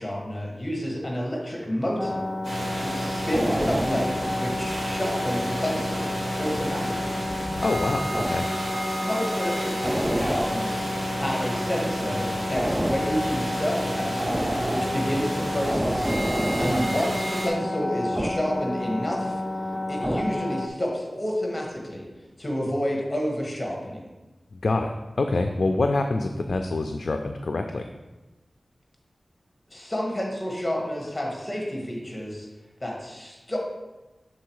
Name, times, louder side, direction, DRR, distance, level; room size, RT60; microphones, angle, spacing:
voice 1, 0.0-2.2 2.7-7.2 9.0-10.9 11.1-16.2 16.6-19.4 19.9-22.1 22.4-24.1 29.7-32.5 32.8-33.6, equal, 25° left, -1 dB, 1.8 m, -30 dB
sound 1, 2.0-20.7, left 1 dB, 5° right, 0.4 m, -29 dB
sound 2, 2.4-17.5, right 1 dB, 65° right, 2.0 m, -32 dB
voice 2, 7.6-8.5 24.5-27.9, left 2 dB, 70° left, 5 dB, 0.4 m, -26 dB
6.3 x 4.0 x 4.7 m, 1.1 s
wide cardioid pair, 60°, 0 cm